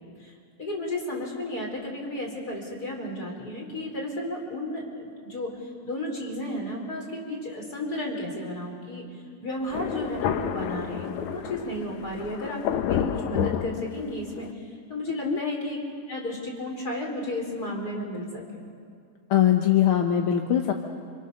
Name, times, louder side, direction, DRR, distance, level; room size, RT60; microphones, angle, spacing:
voice 1, 0.6-9.0 9.4-15.8 16.1-18.4, left 1 dB, 30° left, -1 dB, 5.3 m, -33 dB
Thunder, 9.7-14.5, left 9 dB, 75° left, 2.2 m, -30 dB
voice 2, 19.3-20.7, left 10 dB, 60° left, 3 dB, 1.6 m, -21 dB
29.5 x 27.0 x 6.7 m, 2.3 s
omnidirectional pair, 3.4 m